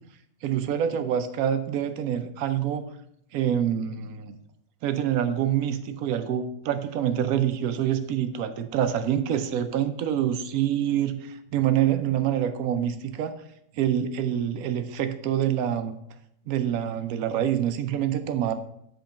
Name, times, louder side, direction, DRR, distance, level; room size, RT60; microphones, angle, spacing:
voice 1, 0.4-2.9 3.3-4.4 4.8-13.4 13.8-16.0 16.5-18.5, right 10 dB, 80° right, 9 dB, 1.0 m, -26 dB
5.1 x 3.8 x 5.6 m, 0.74 s
omnidirectional pair, 1.5 m